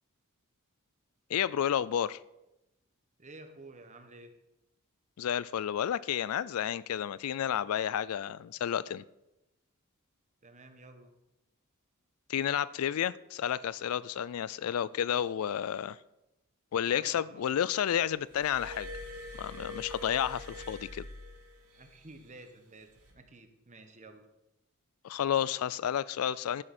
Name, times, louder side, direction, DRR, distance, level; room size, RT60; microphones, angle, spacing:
voice 1, 1.3-2.2 5.2-9.0 12.3-16.0 16.7-18.9 19.4-21.1 25.0-26.6, left 9 dB, 70° left, 0.4 m, -31 dB
voice 2, 3.2-4.3 10.4-11.1 16.9-17.5 21.7-24.3, right 2 dB, 35° right, 1.2 m, -52 dB
Glass, 18.3-21.9 22.9-23.1, left 1 dB, 85° right, 2.6 m, -44 dB
11.5 x 9.8 x 4.3 m
head